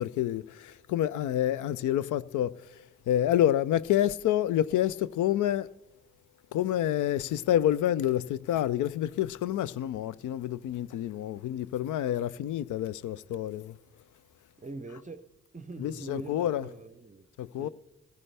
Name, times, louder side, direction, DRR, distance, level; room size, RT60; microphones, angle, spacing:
voice 1, 0.0-5.7 6.5-13.8 15.8-16.7 17.4-17.7, left 12 dB, 65° left, 0.5 m, -28 dB
voice 2, 14.6-15.2 15.5-17.3 17.6-17.7, right 2 dB, 25° right, 0.7 m, -43 dB
19.5 x 15.0 x 3.4 m
hypercardioid pair, 45°, 33 cm